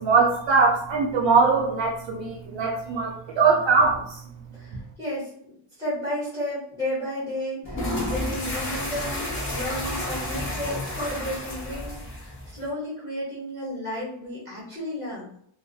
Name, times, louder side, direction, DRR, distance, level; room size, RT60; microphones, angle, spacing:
voice 1, 0.0-4.2, right 4 dB, 65° right, -2 dB, 0.5 m, -21 dB
voice 2, 4.5-5.5 5.8-15.3, left 1 dB, 5° left, -10 dB, 1.1 m, -33 dB
sound 1, 7.6-12.7, left 1 dB, 25° left, 0.6 m, -31 dB
2.4 x 2.0 x 2.6 m, 0.68 s
wide cardioid pair, 170°, 49 cm